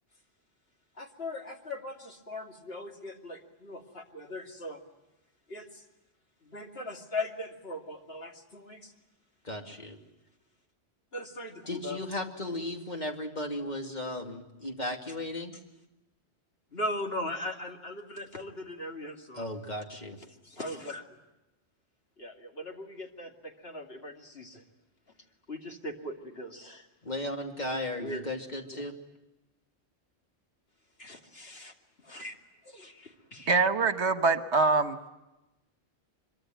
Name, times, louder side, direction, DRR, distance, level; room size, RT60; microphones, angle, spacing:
voice 1, 1.0-4.8 5.5-5.8 6.4-8.9 11.1-12.0 16.7-19.5 20.4-21.0 22.2-24.6 25.5-26.9 28.0-28.2 28.7-28.9 31.0-31.7 32.1-32.3 32.7-33.6, left 1 dB, 55° left, 2 dB, 2.8 m, -39 dB
voice 2, 9.4-10.0 11.7-15.5 19.3-20.2 27.0-28.9, left 1 dB, 40° left, 2 dB, 2.8 m, -35 dB
voice 3, 33.5-35.0, right 4 dB, 70° right, 9 dB, 1.5 m, -24 dB
24.5 x 23.5 x 9.3 m, 0.99 s
omnidirectional pair, 1.2 m